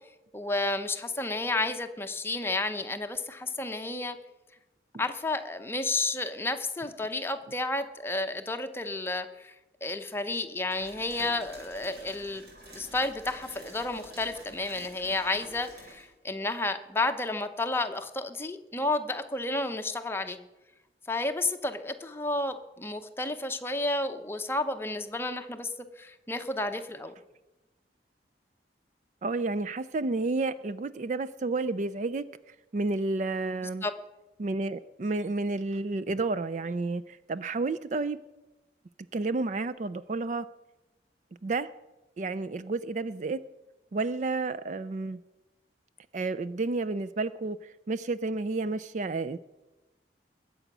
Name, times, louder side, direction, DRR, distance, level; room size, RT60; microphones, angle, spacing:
voice 1, 0.3-4.2 5.0-9.5 9.8-12.4 12.7-20.4 21.1-27.1 33.8-33.9, left 2 dB, 15° left, 7 dB, 0.8 m, -31 dB
sound 1, 10.7-16.1, right 1 dB, 60° right, 4.4 m, -49 dB
voice 2, 29.2-33.8 34.4-38.2 39.1-40.5 41.4-41.7 42.2-43.4 43.9-45.2 46.1-49.4, right 3 dB, 40° right, 15 dB, 0.4 m, -31 dB
21.0 x 7.8 x 6.1 m, 1.1 s
head